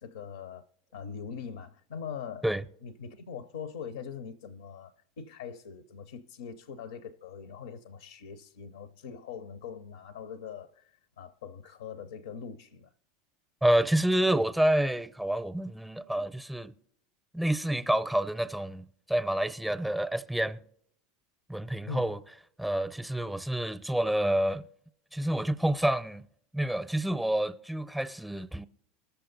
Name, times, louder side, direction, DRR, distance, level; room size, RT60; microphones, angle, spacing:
voice 1, 0.0-2.5 2.8-12.9 21.9-22.1, left 7 dB, 75° left, 0.5 m, -42 dB
voice 2, 13.6-16.7 17.3-20.6 21.5-22.2 22.6-24.6 25.1-26.3 26.5-28.7, right 1 dB, 5° right, 0.6 m, -28 dB
20.0 x 6.9 x 3.9 m
hypercardioid pair, 85°, 0 cm